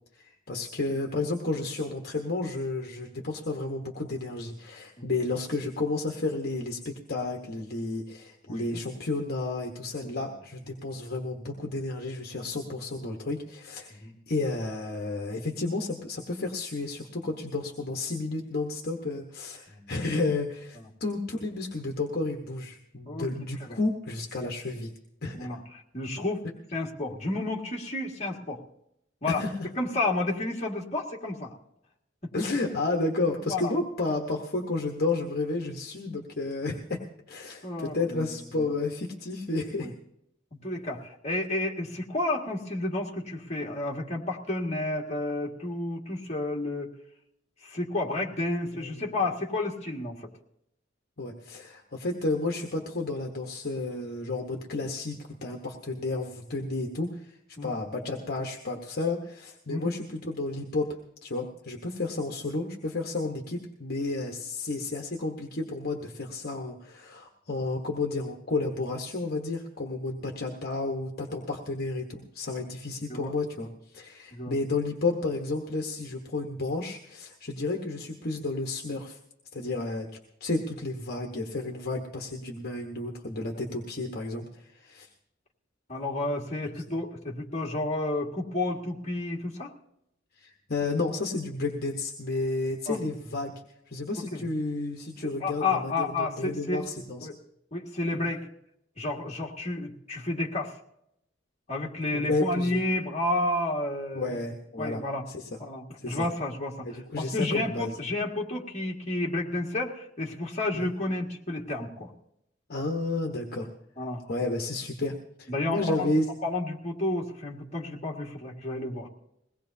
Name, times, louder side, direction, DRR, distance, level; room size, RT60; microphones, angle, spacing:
voice 1, 0.2-24.9 25.2-25.5 29.3-29.7 32.3-37.0 37.3-39.9 48.7-49.2 51.2-57.4 57.6-60.9 61.2-79.2 79.5-80.1 80.4-85.1 86.8-86.9 90.4-93.6 93.9-97.3 102.1-103.0 104.1-105.0 105.3-105.6 106.0-106.3 106.8-107.9 110.7-110.9 112.7-113.7 114.2-115.1 115.4-116.2, left 2 dB, 55° left, 2 dB, 1.2 m, -32 dB
voice 2, 8.5-8.8 10.0-10.2 13.9-14.1 19.7-19.9 20.8-20.9 23.1-23.3 23.6-23.8 25.4-25.6 25.9-26.5 26.7-28.6 29.2-29.4 29.8-31.5 33.4-33.7 37.6-38.7 39.8-39.9 40.5-46.9 47.6-50.2 57.6-57.7 59.7-59.9 73.1-73.3 74.3-74.6 85.9-89.7 92.9-93.0 94.3-94.4 95.2-96.8 97.2-97.4 97.7-98.5 99.0-100.7 101.7-104.4 104.8-105.3 105.6-112.1 114.0-114.5 115.5-116.1 116.4-119.1, left 2 dB, 35° left, -1 dB, 2.0 m, -31 dB
22.0 x 18.0 x 2.8 m, 0.79 s
head